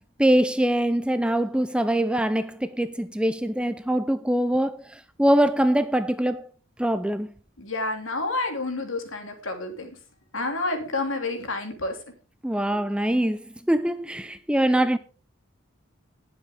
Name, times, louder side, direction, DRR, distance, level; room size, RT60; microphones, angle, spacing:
voice 1, 0.2-6.4 6.8-7.3 12.4-13.4 13.7-15.0, right 1 dB, 5° right, 0.4 m, -23 dB
voice 2, 7.6-9.9 10.3-12.0 12.7-12.8, left 2 dB, 70° left, 3.1 m, -29 dB
19.5 x 7.5 x 3.4 m
head